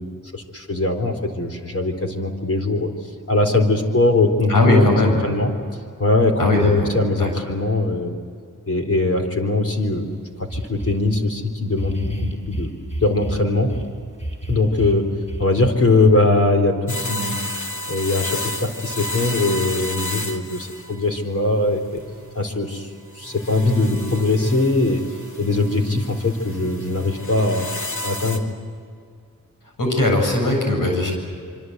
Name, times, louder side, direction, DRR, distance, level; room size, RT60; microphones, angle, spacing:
voice 1, 0.0-2.9 3.3-5.5 6.0-8.2 8.7-10.1 10.4-12.7 13.0-13.7 14.5-15.1 15.4-17.4 17.9-22.0 22.3-22.9 23.2-25.0 25.4-27.7 28.0-28.4, left 2 dB, 45° left, 4 dB, 4.1 m, -21 dB
voice 2, 4.5-5.2 6.4-6.9 7.2-7.3 29.8-31.1, left 2 dB, 85° left, 1 dB, 7.9 m, -19 dB
sound 1, 9.9-10.0 10.5-11.1 11.7-13.9 14.2-15.7, right 1 dB, 20° left, 5.2 m, -30 dB
sound 2, 16.9-21.2 21.8-22.3 23.2-28.4, left 1 dB, 65° left, 2.9 m, -31 dB
26.0 x 25.0 x 8.1 m, 2.3 s
wide cardioid pair, 80°, 32 cm